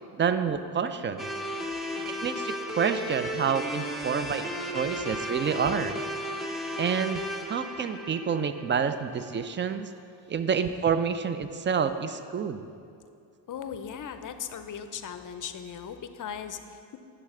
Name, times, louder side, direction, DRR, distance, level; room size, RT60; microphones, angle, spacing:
voice 1, 0.2-1.3 2.2-6.0 6.8-9.9 10.3-12.6, right 6 dB, 25° right, 10 dB, 0.4 m, -28 dB
sound 1, 1.2-9.3, equal, ahead, 0.8 m, -35 dB
voice 2, 13.5-17.0, left 8 dB, 40° left, 9 dB, 0.5 m, -38 dB
9.9 x 3.4 x 4.9 m, 2.4 s
supercardioid pair, 55°, 47 cm